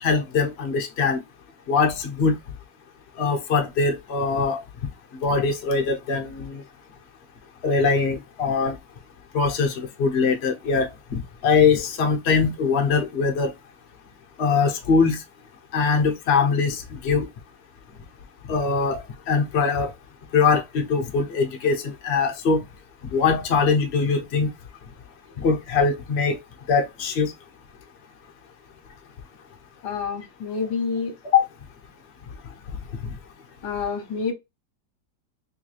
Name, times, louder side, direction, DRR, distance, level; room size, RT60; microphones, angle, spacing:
voice 1, 0.0-1.2 1.7-2.3 3.2-4.6 5.2-6.6 7.6-8.7 9.3-13.5 14.4-15.2 15.7-17.3 18.5-19.9 20.3-22.6 23.1-24.5 25.4-26.4 26.7-27.3 31.3-31.5, left 5 dB, 45° left, 0.9 m, -22 dB
voice 2, 29.8-31.2 33.6-34.3, left 5 dB, 70° left, 1.4 m, -28 dB
3.3 x 3.2 x 3.2 m
omnidirectional pair, 1.9 m